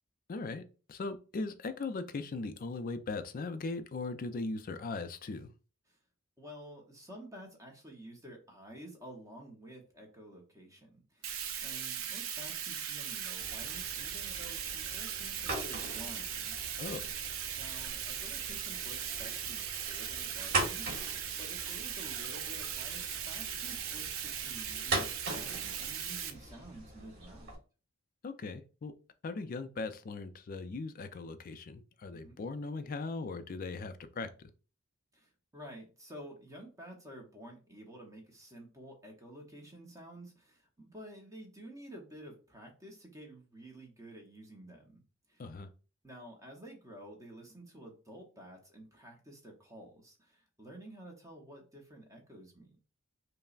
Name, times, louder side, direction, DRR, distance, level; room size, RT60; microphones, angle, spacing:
voice 1, 0.3-0.6 0.9-5.5 16.8-17.1 28.2-28.9 29.2-34.3 45.4-45.7, left 3 dB, 40° left, 0.4 m, -39 dB
voice 2, 6.4-16.6 17.5-27.5 32.1-32.4 35.1-45.0 45.3-45.5 46.0-52.8, right 1 dB, 15° right, 0.8 m, -51 dB
Bathtub (filling or washing), 11.2-26.3, right 8 dB, 70° right, 0.5 m, -39 dB
sound 1, 13.4-27.5, right 2 dB, 55° right, 1.5 m, -41 dB
5.4 x 2.0 x 2.4 m
head